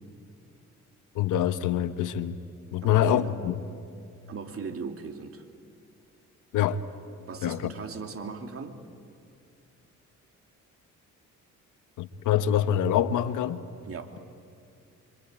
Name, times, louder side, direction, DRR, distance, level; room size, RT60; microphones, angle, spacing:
voice 1, 1.1-2.4 2.7-3.5 6.5-6.8 7.4-7.7 12.0-13.6, left 10 dB, 85° left, 1.2 m, -25 dB
voice 2, 2.8-3.4 4.3-5.4 7.3-8.8 13.8-14.1, right 5 dB, 45° right, 2.8 m, -38 dB
26.0 x 25.5 x 9.0 m
cardioid pair, 90°, 30 cm